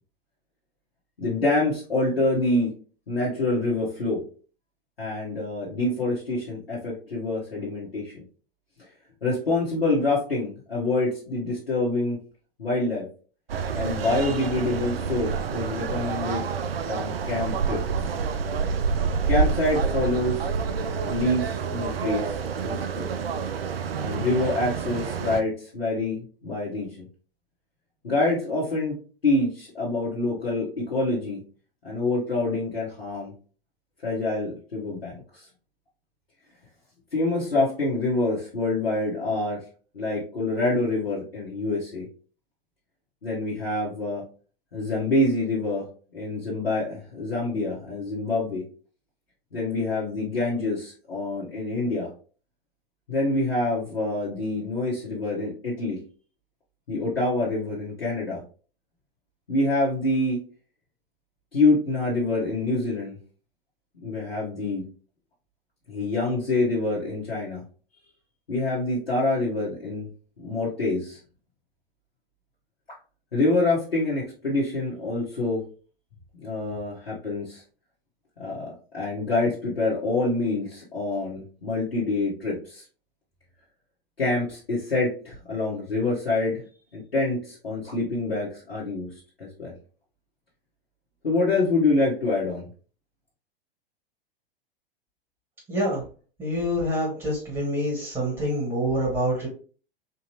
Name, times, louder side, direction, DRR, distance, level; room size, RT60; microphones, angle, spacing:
voice 1, 1.2-2.7 3.1-4.2 5.0-8.1 9.2-12.2 12.6-13.0 13.7-16.4 16.9-18.1 19.3-20.4 21.0-22.4 22.6-23.1 24.0-26.9 28.0-29.0 29.2-31.4 31.8-33.3 34.0-35.4 37.1-39.6 39.9-42.0 43.2-44.2 44.7-45.9 46.1-48.6 49.5-52.1 53.1-56.0 56.9-58.4 59.5-60.4 61.5-63.2 64.0-64.8 65.9-67.6 68.5-70.1 70.4-71.2 73.3-75.6 76.4-77.6 78.4-78.7 78.9-82.8 84.2-86.6 86.9-89.1 89.6-89.7 91.2-92.7, left 2 dB, 80° left, -7 dB, 1.4 m, -26 dB
sound 1, 13.5-25.4, right 5 dB, 80° right, 0.5 m, -28 dB
voice 2, 95.7-96.0 96.4-99.5, equal, 15° right, -5 dB, 2.0 m, -26 dB
4.3 x 2.9 x 2.8 m, 0.39 s
figure-of-eight pair, 95°, 29 cm